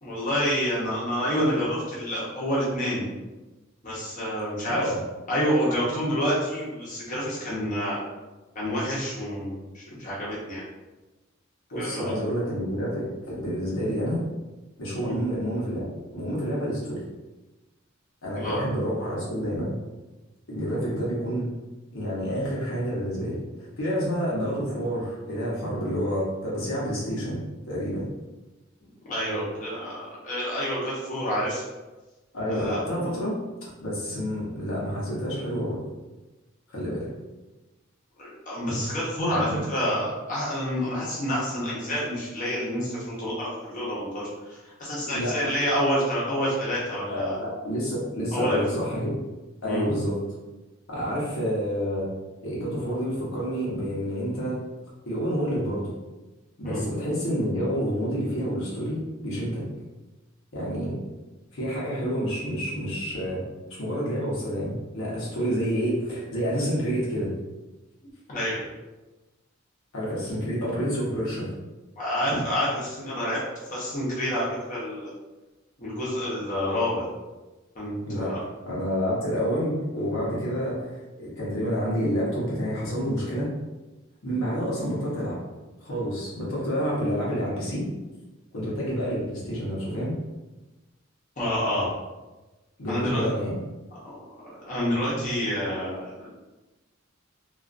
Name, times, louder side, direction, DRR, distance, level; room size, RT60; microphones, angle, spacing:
voice 1, 0.0-3.1 3.8-4.9 5.3-8.0 8.5-10.6 11.7-12.1 15.0-15.2 18.3-18.6 20.7-20.9 29.1-31.6 32.5-33.0 38.2-47.3 48.3-48.7 49.6-49.9 56.6-56.8 68.3-68.6 72.0-73.4 73.7-75.1 75.8-77.0 77.7-78.4 91.4-91.9 92.9-93.3 94.0-94.1 94.7-96.3, equal, 40° left, -7 dB, 0.8 m, -28 dB
voice 2, 4.7-5.0 11.7-14.2 14.8-15.9 16.1-17.0 18.2-19.7 20.5-21.5 21.9-28.1 32.3-33.3 33.8-35.8 36.7-37.1 39.3-39.6 45.1-45.4 47.1-49.2 49.6-50.2 50.9-52.1 52.4-54.6 55.0-55.9 56.6-59.6 60.5-60.9 61.5-63.4 63.7-67.3 69.9-71.5 78.1-78.4 78.6-83.5 84.2-85.4 85.8-87.9 88.5-90.1 92.8-93.5, equal, 85° left, -6 dB, 0.9 m, -28 dB
2.4 x 2.3 x 2.5 m, 1.1 s
head